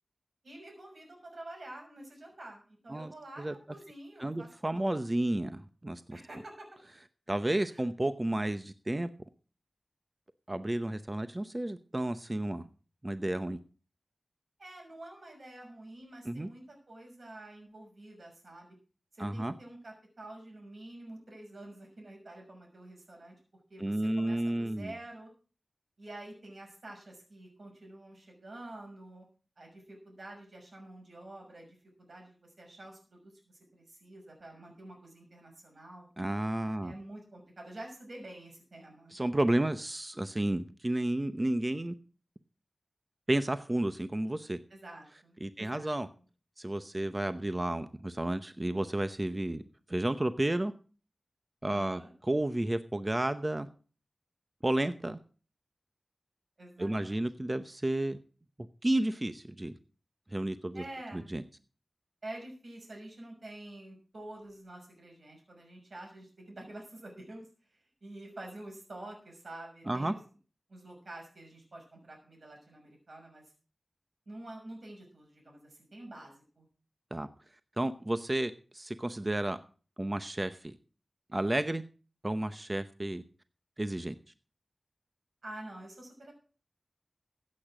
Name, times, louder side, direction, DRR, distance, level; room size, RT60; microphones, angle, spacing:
voice 1, 0.4-5.0 6.1-6.7 7.7-7.8 14.6-18.7 19.1-23.3 23.7-25.3 26.0-29.2 29.6-36.1 36.8-39.1 44.7-46.0 51.7-52.1 56.6-57.2 60.7-61.3 62.2-70.2 70.7-73.4 74.3-76.7 85.4-86.3, right 1 dB, 70° right, 1 dB, 6.2 m, -48 dB
voice 2, 4.2-6.2 7.3-9.1 10.5-12.6 13.0-13.6 16.3-16.5 19.2-19.5 23.8-24.9 36.2-36.9 39.1-41.9 43.3-44.6 45.4-46.1 46.6-49.6 49.9-50.7 51.6-53.7 54.6-55.2 56.8-58.2 58.8-59.7 60.3-60.8 61.1-61.4 69.9-70.1 77.1-77.3 77.8-79.6 80.0-80.7 81.3-81.8 82.2-83.2 83.8-84.2, right 1 dB, 25° right, 11 dB, 0.8 m, -31 dB
15.0 x 8.6 x 4.9 m, 0.38 s
wide cardioid pair, 70°, 0 cm